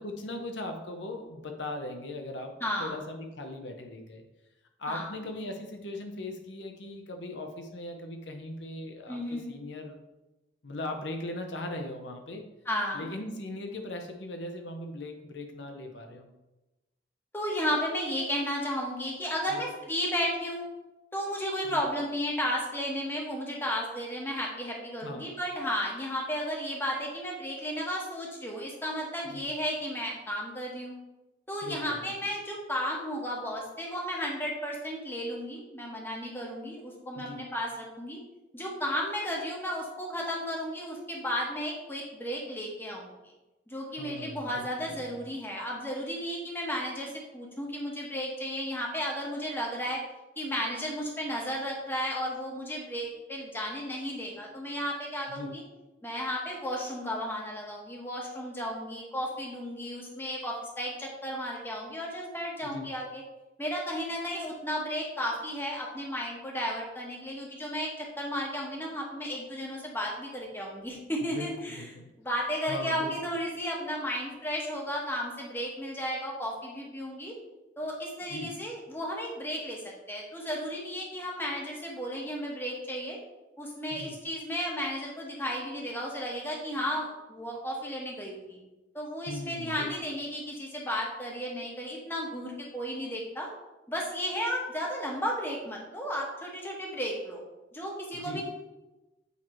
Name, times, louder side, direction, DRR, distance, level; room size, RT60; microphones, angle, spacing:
voice 1, 0.0-4.2 4.8-10.0 10.6-12.5 12.9-16.3 19.5-19.6 21.7-21.8 25.0-25.3 29.3-29.5 31.6-32.1 37.2-37.5 44.0-44.7 55.3-55.6 62.6-62.9 71.2-72.1 72.7-73.1 78.3-78.5 83.9-84.1 89.3-89.9 98.1-98.4, left 2 dB, 80° left, 4 dB, 0.8 m, -39 dB
voice 2, 2.6-3.0 4.9-5.1 9.1-9.5 12.6-13.1 17.3-20.6 21.1-30.9 31.5-38.2 38.5-43.2 43.7-50.0 50.4-55.6 56.0-63.2 63.6-71.8 72.2-77.3 77.8-79.8 80.1-83.2 83.6-88.6 88.9-93.5 93.9-97.4 97.7-98.4, equal, 10° left, -2 dB, 1.1 m, -34 dB
8.3 x 3.1 x 4.4 m, 1.0 s
head